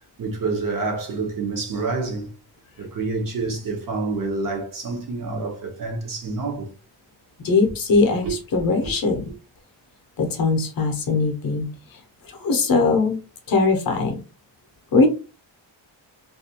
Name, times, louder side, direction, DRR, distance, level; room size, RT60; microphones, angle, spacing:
voice 1, 0.2-2.3 2.8-6.7 8.2-8.3 8.8-8.9, right 3 dB, 45° right, 0.7 m, -27 dB
voice 2, 7.4-9.3 10.2-13.2 13.5-14.2 14.9-15.1, left 3 dB, 50° left, 0.6 m, -21 dB
2.4 x 2.2 x 2.7 m
wide cardioid pair, 170°, 46 cm